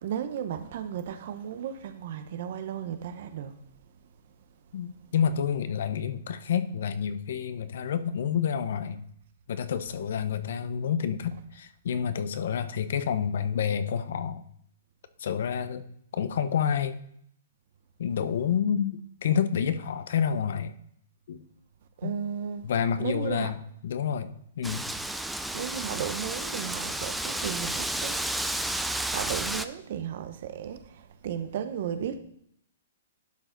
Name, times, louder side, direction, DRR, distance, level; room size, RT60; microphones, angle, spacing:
voice 1, 0.0-3.6 22.0-22.6 23.0-23.5 25.5-28.2 29.1-32.2, right 9 dB, 55° right, 0.8 m, -34 dB
voice 2, 4.7-9.0 9.5-14.4 15.2-15.8 16.1-17.0 18.0-20.7 21.3-21.4 22.0-22.1 22.6-24.8, left 7 dB, 65° left, 0.7 m, -29 dB
Wind, 24.6-29.7, right 1 dB, ahead, 0.3 m, -32 dB
11.5 x 5.0 x 3.9 m
hypercardioid pair, 155°, 0 cm